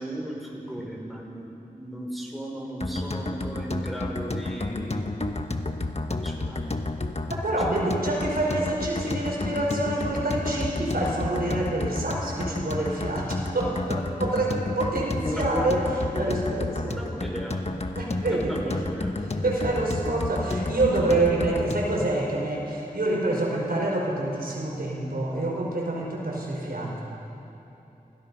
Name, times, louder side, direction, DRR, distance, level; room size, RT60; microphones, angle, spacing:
voice 1, 0.0-5.4 6.2-6.8 7.7-7.8 15.1-15.7 16.8-17.6 18.5-19.1, right 1 dB, ahead, -3 dB, 5.0 m, -36 dB
sound 1, 2.8-22.0, left 2 dB, 45° left, 1.3 m, -31 dB
voice 2, 7.4-15.8 16.1-17.0 18.0-18.6 19.4-27.0, right 2 dB, 80° right, -2 dB, 5.0 m, -27 dB
30.0 x 17.5 x 5.5 m, 2.9 s
wide cardioid pair, 45°, 15 cm